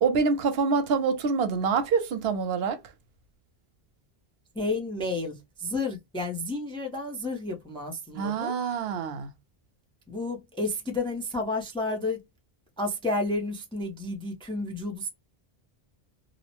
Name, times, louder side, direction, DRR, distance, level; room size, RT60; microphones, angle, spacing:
voice 1, 0.0-2.8 8.1-9.3, right 5 dB, 80° right, 0.8 m, -26 dB
voice 2, 4.6-8.5 10.1-12.2 12.8-15.1, left 2 dB, 10° left, 0.4 m, -31 dB
2.7 x 2.0 x 2.8 m
omnidirectional pair, 1.0 m